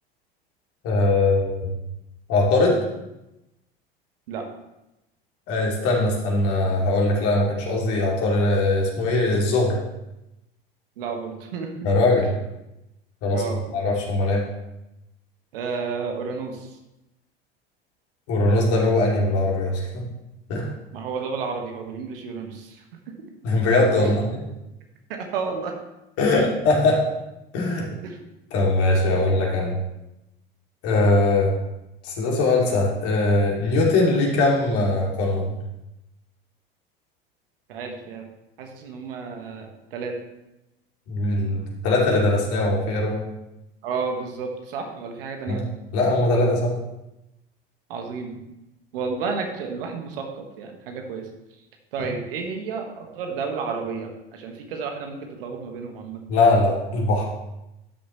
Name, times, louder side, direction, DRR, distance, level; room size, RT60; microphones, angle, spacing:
voice 1, 0.8-1.7 2.3-2.8 5.5-9.8 11.8-12.3 13.2-13.4 13.7-14.4 18.3-20.0 20.5-20.7 23.4-24.2 26.2-27.0 27.5-27.9 28.5-29.8 30.8-31.5 32.0-35.5 41.1-43.2 45.5-45.6 45.9-46.7 56.3-57.2, left 2 dB, 50° left, -2 dB, 2.8 m, -21 dB
voice 2, 11.0-11.7 13.3-13.6 15.5-16.8 20.9-23.1 24.0-24.1 25.1-25.7 26.3-26.4 28.0-28.2 29.1-29.3 37.7-38.3 38.6-40.2 43.8-45.6 47.9-48.4 48.9-51.3 51.9-56.2, right 5 dB, 70° right, 3 dB, 1.5 m, -31 dB
12.5 x 6.4 x 3.1 m, 0.93 s
hypercardioid pair, 75°, 30 cm